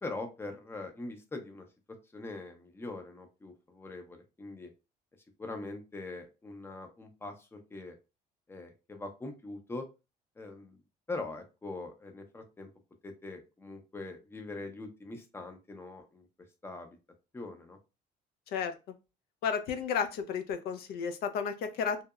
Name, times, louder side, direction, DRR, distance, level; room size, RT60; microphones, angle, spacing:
voice 1, 0.0-4.7 5.4-8.0 8.5-9.8 10.4-10.8 11.1-12.7 13.0-16.3 16.6-17.0 17.3-17.8, left 2 dB, 15° left, 5 dB, 0.5 m, -42 dB
voice 2, 19.4-22.0, left 6 dB, 70° left, 7 dB, 0.4 m, -32 dB
2.8 x 2.0 x 2.3 m, 0.28 s
cardioid pair, 110°, 17 cm